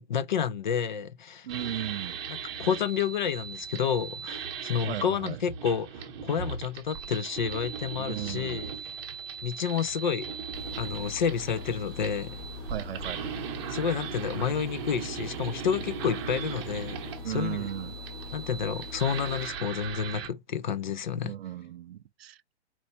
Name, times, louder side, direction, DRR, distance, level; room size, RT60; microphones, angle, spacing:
voice 1, 0.0-1.5 2.3-9.0 9.4-10.3 10.8-12.4 13.7-17.7 18.3-21.3, left 7 dB, 45° left, 0.4 m, -30 dB
voice 2, 1.4-2.2 4.8-5.4 8.0-8.8 12.7-13.3 17.2-17.9 21.1-22.4, right 12 dB, 60° right, 0.5 m, -36 dB
sound 1, 1.5-20.3, right 6 dB, 25° right, 0.8 m, -38 dB
sound 2, 10.5-19.5, left 3 dB, 15° left, 0.8 m, -42 dB
4.3 x 2.7 x 4.3 m
hypercardioid pair, 170°, 34 cm